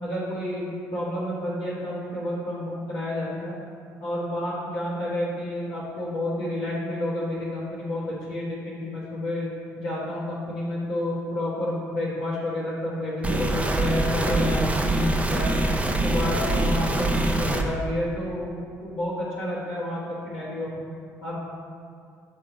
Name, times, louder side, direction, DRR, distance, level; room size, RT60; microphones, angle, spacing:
voice 1, 0.0-3.5 4.0-9.5 9.8-15.5 15.8-20.7 21.2-21.4, left 1 dB, 70° left, -10 dB, 1.4 m, -30 dB
sound 1, 13.2-16.2, left 1 dB, 90° left, 0.9 m, -44 dB
sound 2, 13.2-17.6, right 2 dB, 15° right, 0.6 m, -24 dB
8.9 x 3.6 x 3.0 m, 2.3 s
hypercardioid pair, 50°, 9 cm